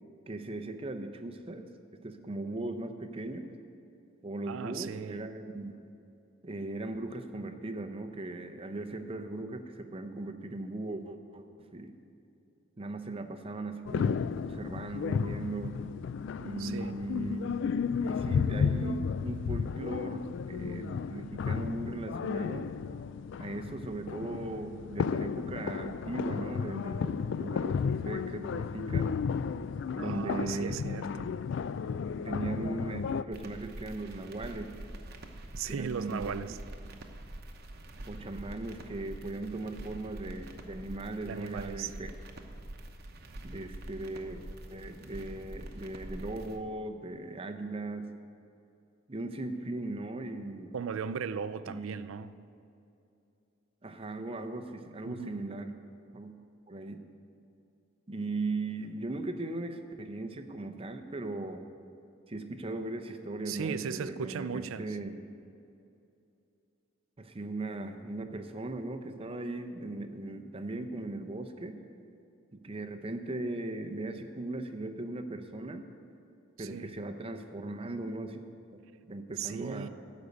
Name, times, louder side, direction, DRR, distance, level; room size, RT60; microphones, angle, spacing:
voice 1, 0.3-1.7 2.0-3.5 4.2-5.7 6.4-12.0 12.8-15.7 16.4-17.6 18.0-22.7 23.4-29.1 29.9-30.7 32.2-34.7 35.7-36.4 38.1-42.1 43.4-44.4 44.7-48.1 49.1-50.7 51.7-52.0 53.8-55.7 56.1-56.3 56.7-57.0 58.1-61.6 62.3-65.1 67.2-71.8 72.5-75.9 76.6-78.4 79.1-79.9, right 2 dB, 30° right, 0.7 m, -38 dB
voice 2, 4.5-5.2 16.6-17.0 30.0-31.4 35.5-36.6 41.2-41.9 50.7-52.3 55.0-55.3 63.5-65.0 76.6-76.9 79.4-79.9, right 6 dB, 85° right, 0.4 m, -37 dB
sound 1, 13.8-33.2, left 6 dB, 65° left, 0.3 m, -33 dB
sound 2, 33.3-46.6, right 1 dB, 50° right, 0.9 m, -45 dB
13.5 x 5.2 x 8.0 m
head